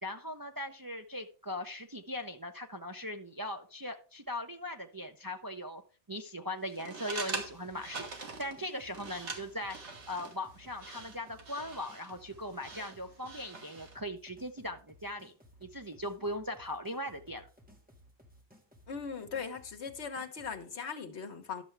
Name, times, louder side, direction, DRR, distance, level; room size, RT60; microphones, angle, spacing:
voice 1, 0.0-5.8 6.1-9.8 10.1-15.3 15.6-17.5, left 1 dB, 25° right, 0.5 m, -39 dB
sound 1, 6.7-14.0, right 3 dB, 75° right, 1.9 m, -44 dB
sound 2, 7.3-20.6, equal, 10° right, 1.7 m, -60 dB
voice 2, 18.9-21.6, left 6 dB, 70° left, 1.5 m, -39 dB
11.5 x 6.9 x 3.3 m
omnidirectional pair, 1.2 m